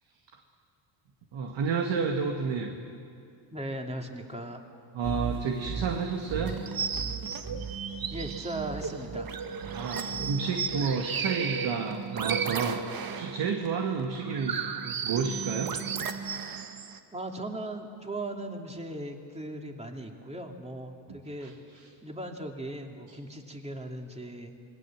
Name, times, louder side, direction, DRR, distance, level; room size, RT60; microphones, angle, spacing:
voice 1, 1.3-2.7 4.9-6.6 9.7-15.7 21.1-21.5, right 5 dB, 60° right, 2 dB, 2.2 m, -31 dB
voice 2, 3.5-4.6 8.1-9.3 17.1-21.6 22.0-24.5, right 1 dB, 15° right, 2 dB, 2.8 m, -38 dB
sound 1, 5.0-11.0, right 6 dB, 85° right, 2.9 m, -39 dB
sound 2, 6.5-17.0, right 6 dB, 45° right, 1.7 m, -34 dB
27.0 x 20.5 x 7.5 m, 2.4 s
cardioid pair, 95°, 50 cm